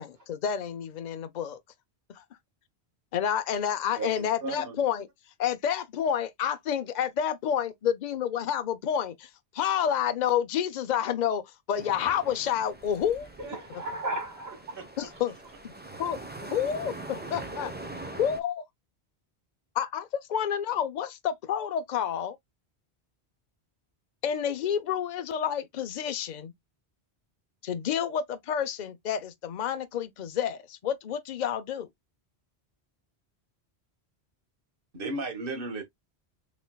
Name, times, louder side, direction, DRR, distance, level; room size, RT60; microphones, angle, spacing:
voice 1, 0.0-1.6 2.1-2.2 3.1-5.1 5.4-9.3 9.5-11.4 11.7-13.3 15.0-15.3 15.6-15.7 16.0-16.2 16.5-17.7 18.2-18.6 19.8-22.4 24.2-26.5 27.6-31.9, left 9 dB, 50° left, 0.7 m, -29 dB
voice 2, 4.0-4.8 14.7-15.1 34.9-35.8, right 2 dB, 55° right, 1.4 m, -35 dB
sound 1, 11.7-18.4, right 2 dB, 10° right, 0.7 m, -43 dB
voice 3, 13.4-14.8 16.8-17.4 17.6-17.7, right 2 dB, 75° right, 1.9 m, -36 dB
5.9 x 3.2 x 2.2 m
omnidirectional pair, 1.1 m